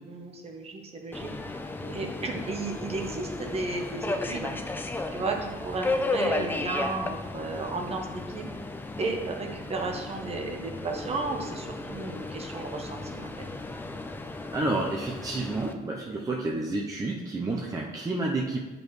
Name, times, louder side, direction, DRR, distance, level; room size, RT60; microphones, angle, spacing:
voice 1, 0.0-1.3 1.8-4.5 5.1-8.5 9.0-13.5, right 3 dB, 35° right, 3 dB, 1.1 m, -34 dB
Subway metro underground, 1.1-15.7, left 2 dB, 10° left, 0.5 m, -34 dB
voice 2, 14.3-18.6, right 2 dB, 20° right, -2 dB, 0.7 m, -30 dB
8.9 x 5.2 x 3.1 m, 1.2 s
cardioid pair, 110°, 17 cm